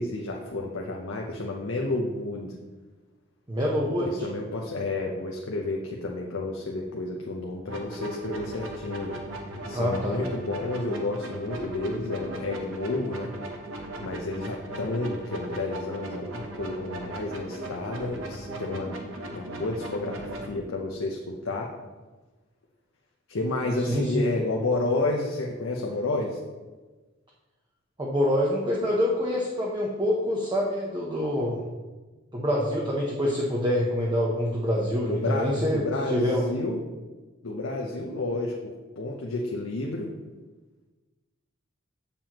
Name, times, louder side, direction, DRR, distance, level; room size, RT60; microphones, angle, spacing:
voice 1, 0.0-2.6 4.0-9.2 9.7-13.3 14.0-19.0 19.3-21.7 23.3-26.4 35.1-36.8 37.4-40.1, left 2 dB, 85° left, 0 dB, 0.8 m, -31 dB
voice 2, 3.5-4.1 9.7-10.2 23.9-24.2 28.0-31.6 32.3-36.6, equal, 20° right, -3 dB, 0.8 m, -26 dB
sound 1, 7.7-20.5, right 1 dB, 70° right, 1.0 m, -38 dB
7.5 x 6.8 x 3.0 m, 1.3 s
head